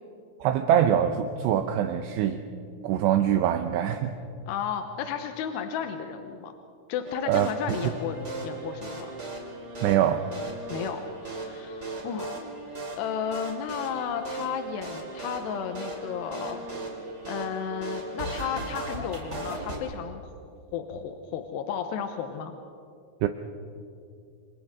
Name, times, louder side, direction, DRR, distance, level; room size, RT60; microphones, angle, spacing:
voice 1, 0.4-2.4 2.8-4.1 7.3-7.9 9.8-10.3 23.2-23.3, right 10 dB, 80° right, 7 dB, 2.6 m, -24 dB
voice 2, 4.5-6.5 6.9-9.1 10.7-12.5 13.0-16.6 17.3-20.2 20.7-22.5, left 8 dB, 75° left, 6 dB, 2.7 m, -33 dB
sound 1, 7.0-19.8, right 2 dB, 20° right, 2.6 m, -37 dB
28.0 x 27.0 x 3.7 m, 2.4 s
omnidirectional pair, 5.6 m